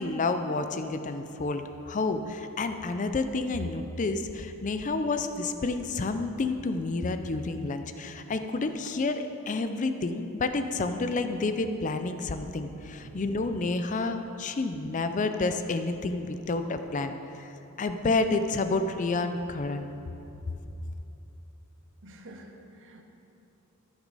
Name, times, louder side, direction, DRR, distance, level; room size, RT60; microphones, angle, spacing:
voice 1, 0.0-17.5 17.8-19.9, left 3 dB, 35° left, 8 dB, 0.4 m, -29 dB
voice 2, 22.0-23.0, right 1 dB, 60° right, 3 dB, 0.9 m, -48 dB
13.5 x 6.1 x 4.1 m, 2.9 s
head